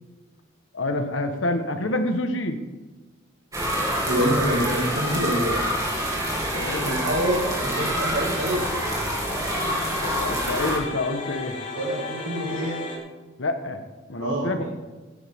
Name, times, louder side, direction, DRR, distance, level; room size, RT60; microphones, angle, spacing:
voice 1, 0.7-2.6 6.5-7.0 10.0-11.6 13.4-14.6, left 2 dB, 75° left, 7 dB, 1.3 m, -27 dB
sound 1, 3.5-10.8, equal, 15° right, 2.4 m, -27 dB
sound 2, 3.7-13.0, left 3 dB, 40° left, 2.9 m, -36 dB
voice 2, 4.1-5.6 6.8-8.6 11.7-12.8 14.2-14.6, right 1 dB, 70° right, -4 dB, 2.3 m, -26 dB
16.5 x 10.0 x 3.7 m, 1.3 s
head